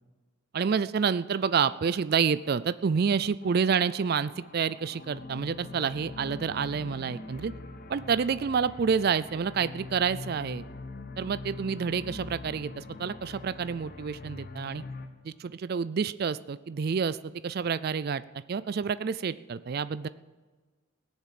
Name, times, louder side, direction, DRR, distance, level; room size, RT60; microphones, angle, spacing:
voice 1, 0.5-7.5 7.9-10.6 11.2-14.8 15.2-18.2 18.5-20.1, right 6 dB, 45° right, 16 dB, 0.3 m, -28 dB
sound 1, 3.4-15.1, left 3 dB, 45° left, 1.0 m, -43 dB
17.5 x 7.3 x 7.6 m, 1.4 s
head